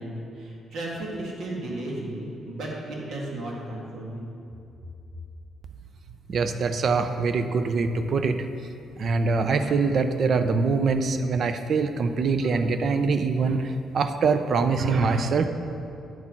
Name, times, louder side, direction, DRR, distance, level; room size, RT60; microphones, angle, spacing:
voice 1, 0.0-4.2, right 1 dB, 75° right, -3 dB, 1.8 m, -34 dB
voice 2, 6.3-8.4 9.0-15.5, right 4 dB, 55° right, 9 dB, 0.5 m, -24 dB
9.1 x 4.2 x 5.9 m, 2.7 s
cardioid pair, 90°, 0 cm